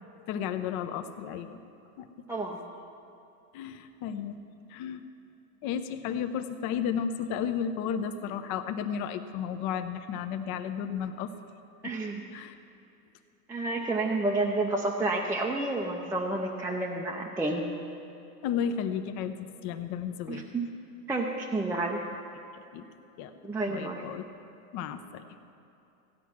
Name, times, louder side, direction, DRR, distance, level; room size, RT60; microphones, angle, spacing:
voice 1, 0.3-1.6 2.0-2.1 3.5-4.4 4.7-5.0 5.6-11.3 12.3-12.6 18.4-20.4 22.7-22.8 23.2-23.3 23.7-24.2 24.7-25.2, left 8 dB, 40° left, 8 dB, 0.8 m, -33 dB
voice 2, 2.3-2.6 11.8-12.2 13.5-17.6 20.3-20.7 21.1-22.0 23.4-24.0, right 2 dB, 5° right, -2 dB, 0.6 m, -30 dB
15.5 x 9.2 x 5.9 m, 2.8 s
hypercardioid pair, 125°, 45 cm